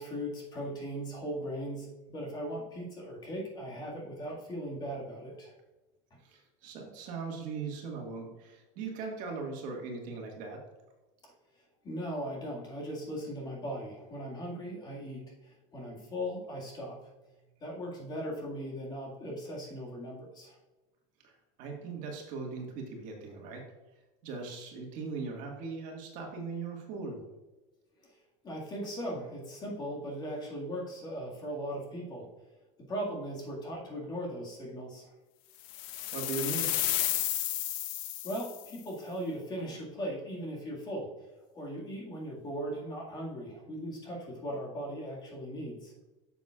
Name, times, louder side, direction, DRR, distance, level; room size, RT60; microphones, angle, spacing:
voice 1, 0.0-5.5 11.2-17.0 17.6-20.6 28.0-32.3 32.8-35.1 38.2-41.3 41.5-45.9, equal, 25° left, -2 dB, 2.0 m, -38 dB
voice 2, 6.2-10.6 21.2-23.6 24.2-27.2 36.1-36.7, right 4 dB, 50° right, 1 dB, 1.8 m, -39 dB
sound 1, 35.7-38.7, left 13 dB, 55° left, 0.6 m, -32 dB
9.1 x 7.1 x 2.5 m, 1.1 s
supercardioid pair, 150°, 17 cm